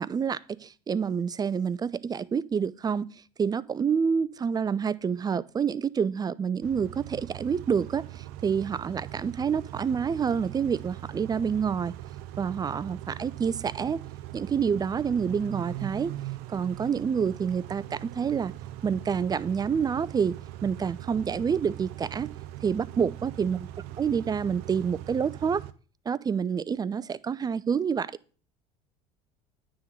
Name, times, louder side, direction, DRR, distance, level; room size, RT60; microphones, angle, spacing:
voice 1, 0.0-3.1 3.4-11.9 12.4-14.0 14.3-16.1 16.5-18.5 18.8-20.4 20.6-22.3 22.6-23.7 24.0-25.6 26.1-28.1, right 6 dB, 25° right, 0.4 m, -28 dB
Car / Idling / Accelerating revving vroom, 6.6-25.7, right 14 dB, 65° right, 0.6 m, -41 dB
9.4 x 3.7 x 6.5 m
hypercardioid pair, 80°, 17 cm